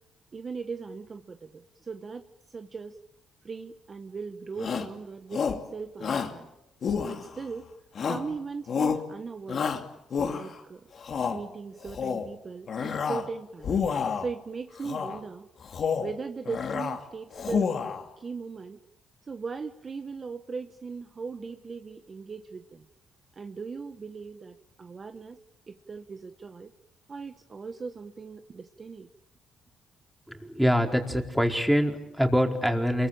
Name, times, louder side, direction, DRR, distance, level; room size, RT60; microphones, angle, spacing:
voice 1, 0.3-3.0 3.4-6.5 7.1-7.7 8.1-9.8 10.2-10.9 11.3-13.8 14.2-15.5 16.0-17.7 18.2-18.8 19.3-22.9 23.3-25.4 25.7-26.7 27.1-29.1, right 5 dB, 35° right, 7 dB, 1.4 m, -39 dB
Shout, 4.6-4.9 5.3-5.7 6.0-6.4 6.8-7.5 8.0-8.3 8.7-9.1 9.5-10.6 11.0-11.4 11.8-12.3 12.7-13.3 13.6-14.3 14.8-15.2 15.6-16.1 16.5-17.0 17.3-18.0, left 6 dB, 55° left, 2.8 m, -29 dB
voice 2, 30.3-33.1, equal, 5° right, 3 dB, 4.5 m, -24 dB
29.0 x 23.0 x 8.9 m, 0.84 s
cardioid pair, 90°, 0 cm